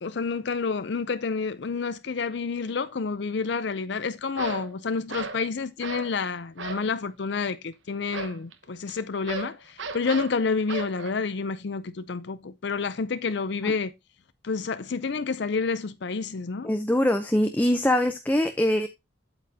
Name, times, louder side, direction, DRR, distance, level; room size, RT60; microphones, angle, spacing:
voice 1, 0.0-13.9 14.4-16.7, left 4 dB, 60° left, 0.5 m, -29 dB
sound 1, 2.6-2.8 4.3-4.7 5.1-5.4 5.8-6.2 6.6-6.9 8.1-11.1, right 4 dB, 70° right, 1.1 m, -36 dB
voice 2, 16.6-18.9, left 1 dB, 10° left, 0.6 m, -23 dB
8.4 x 8.0 x 2.7 m
head